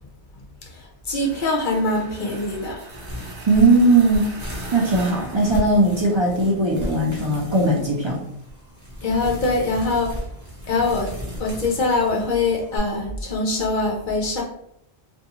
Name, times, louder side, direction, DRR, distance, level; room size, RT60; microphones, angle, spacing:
voice 1, 0.7-2.8 9.0-10.1 10.7-11.1 11.4-14.4, left 2 dB, 60° left, -1 dB, 0.6 m, -23 dB
sound 1, 1.1-6.3, right 2 dB, 75° right, 1.0 m, -41 dB
sound 2, 2.9-12.8, equal, 20° right, 0.9 m, -36 dB
voice 2, 3.5-4.3 4.7-8.2, right 2 dB, 45° right, -2 dB, 0.3 m, -18 dB
2.5 x 2.3 x 2.8 m, 0.76 s
omnidirectional pair, 1.1 m